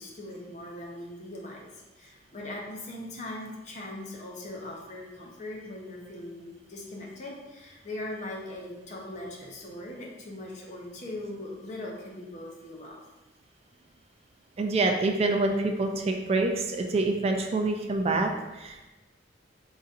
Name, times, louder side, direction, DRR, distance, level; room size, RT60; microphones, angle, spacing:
voice 1, 0.0-1.7 2.0-13.0, left 1 dB, 40° left, -1 dB, 0.8 m, -40 dB
voice 2, 14.6-18.9, right 2 dB, 35° right, 3 dB, 0.3 m, -26 dB
4.0 x 3.9 x 2.5 m, 1.1 s
head